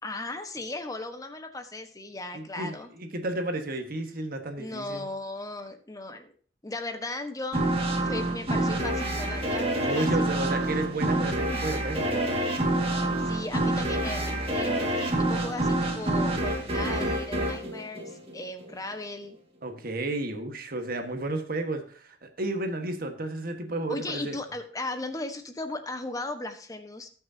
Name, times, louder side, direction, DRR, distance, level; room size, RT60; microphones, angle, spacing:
voice 1, 0.0-2.9 4.6-6.3 6.6-7.7 8.0-10.3 13.2-19.4 23.9-27.1, left 2 dB, 20° left, 7 dB, 1.2 m, -37 dB
voice 2, 2.3-5.1 9.8-12.1 19.6-24.4, right 2 dB, 55° right, 6 dB, 1.5 m, -32 dB
sound 1, 7.5-18.7, right 1 dB, 35° right, 1.9 m, -27 dB
19.0 x 6.4 x 2.8 m, 0.43 s
head